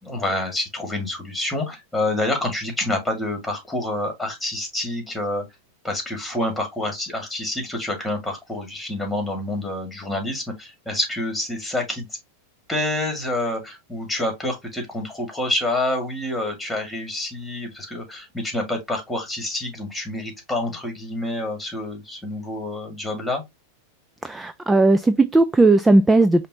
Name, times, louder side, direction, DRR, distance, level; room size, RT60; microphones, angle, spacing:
voice 1, 0.0-5.4 5.8-12.1 12.7-23.4, left 1 dB, 5° left, 2.0 m, -27 dB
voice 2, 24.2-26.5, right 2 dB, 10° right, 0.3 m, -16 dB
5.2 x 2.5 x 2.8 m
hypercardioid pair, 100°, 0 cm